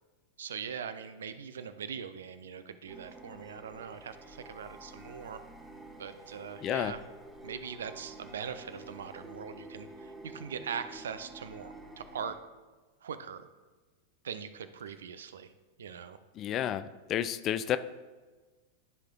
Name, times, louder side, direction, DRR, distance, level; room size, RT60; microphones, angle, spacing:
voice 1, 0.4-5.4 6.0-7.0 7.4-12.4 13.0-13.5 14.2-15.5 15.8-16.2, right 7 dB, 65° right, 11 dB, 0.5 m, -41 dB
sound 1, 2.9-12.4, right 1 dB, 5° right, 1.2 m, -49 dB
voice 2, 6.6-6.9 16.4-17.8, left 10 dB, 35° left, 13 dB, 0.3 m, -31 dB
14.0 x 4.9 x 2.3 m, 1.3 s
figure-of-eight pair, 90°, 0 cm